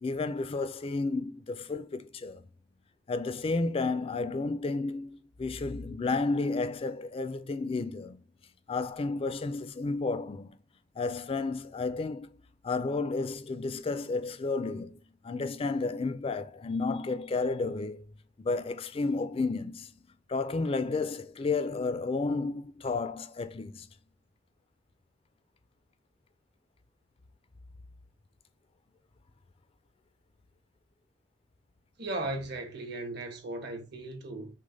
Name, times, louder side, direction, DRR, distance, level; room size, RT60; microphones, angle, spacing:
voice 1, 0.0-2.4 3.1-8.2 8.7-10.6 11.0-12.3 12.6-15.0 15.2-18.0 18.4-19.9 20.3-23.9, left 3 dB, 30° left, 0.4 m, -32 dB
voice 2, 32.0-34.5, right 2 dB, 60° right, 1.1 m, -36 dB
6.2 x 2.1 x 3.9 m
head